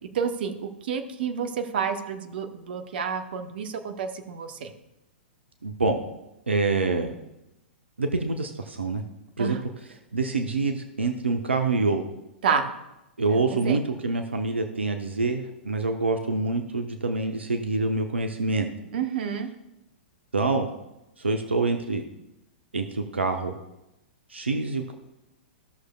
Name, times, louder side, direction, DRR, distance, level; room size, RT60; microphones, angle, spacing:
voice 1, 0.1-4.7 9.4-9.6 12.4-12.7 13.3-13.8 18.9-19.5, right 6 dB, 60° right, 7 dB, 1.0 m, -29 dB
voice 2, 5.6-6.0 6.5-7.1 8.0-9.0 9.4-9.7 10.1-12.0 13.2-18.7 20.3-20.7 21.2-22.0 22.7-23.5 24.3-24.9, right 3 dB, 80° right, 5 dB, 0.8 m, -26 dB
15.5 x 6.5 x 2.3 m, 0.92 s
figure-of-eight pair, 105°, 6 cm